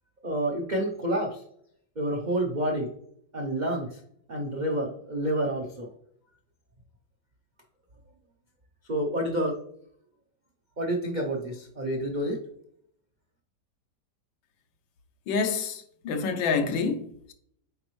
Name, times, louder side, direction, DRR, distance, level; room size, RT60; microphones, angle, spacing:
voice 1, 0.2-1.4 2.0-2.9 3.3-4.0 4.3-5.9 8.9-9.5 10.8-12.4, right 1 dB, 75° right, 0.4 m, -28 dB
voice 2, 15.3-17.3, left 5 dB, 80° left, 1.5 m, -28 dB
8.6 x 4.1 x 3.1 m
omnidirectional pair, 2.1 m